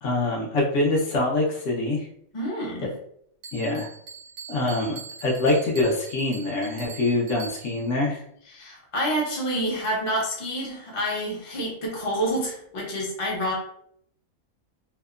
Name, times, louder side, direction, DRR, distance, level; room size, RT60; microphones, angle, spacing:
voice 1, 0.0-2.1 3.5-3.9 4.5-8.2, left 2 dB, 65° left, -1 dB, 0.9 m, -24 dB
voice 2, 2.3-2.9 8.5-13.5, equal, 35° left, -3 dB, 0.5 m, -28 dB
Bell, 3.4-8.0, right 5 dB, 75° right, 1.0 m, -43 dB
2.8 x 2.0 x 2.3 m, 0.67 s
omnidirectional pair, 1.5 m